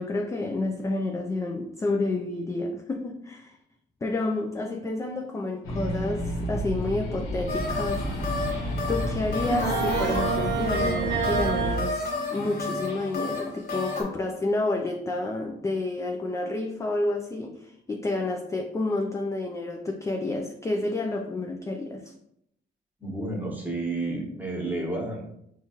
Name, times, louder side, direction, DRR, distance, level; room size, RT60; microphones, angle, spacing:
voice 1, 0.0-3.6 4.0-8.1 8.6-22.1, left 2 dB, 15° left, 2 dB, 0.3 m, -30 dB
sound 1, 5.6-11.9, equal, 90° left, 0.8 m, -31 dB
sound 2, 7.5-14.0, left 3 dB, 50° left, 1.5 m, -31 dB
sound 3, 9.5-11.8, right 7 dB, 65° right, 0.6 m, -28 dB
voice 2, 23.0-25.3, right 2 dB, 10° right, -2 dB, 1.2 m, -31 dB
4.3 x 2.4 x 2.9 m, 0.76 s
cardioid pair, 90°, 20 cm